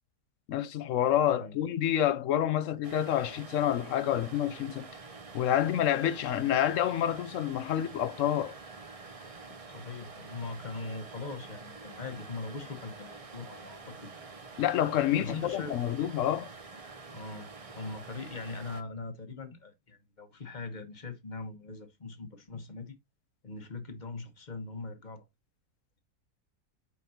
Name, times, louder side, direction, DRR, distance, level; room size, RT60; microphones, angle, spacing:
voice 1, 0.5-4.8 5.3-8.5 14.6-16.5, left 11 dB, 65° left, 0.8 m, -28 dB
voice 2, 1.3-1.6 9.7-14.3 15.2-15.8 17.1-17.5 17.8-23.0 23.4-25.3, left 3 dB, 30° left, 1.2 m, -41 dB
sound 1, 2.8-18.8, right 4 dB, 30° right, 0.6 m, -47 dB
8.2 x 5.3 x 2.8 m
omnidirectional pair, 1.6 m